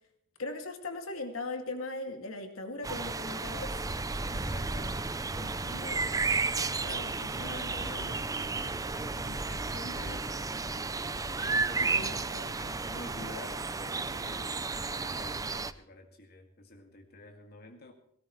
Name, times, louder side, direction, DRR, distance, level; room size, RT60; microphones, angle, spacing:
voice 1, 0.4-3.7 11.8-12.5, left 2 dB, 75° left, 5 dB, 2.3 m, -38 dB
sound 1, 2.8-15.7, right 3 dB, 15° right, 0.6 m, -33 dB
voice 2, 4.3-6.2 6.8-10.9 11.4-12.3 12.6-17.9, left 2 dB, 50° left, 3 dB, 2.1 m, -48 dB
18.5 x 17.5 x 3.2 m, 0.68 s
head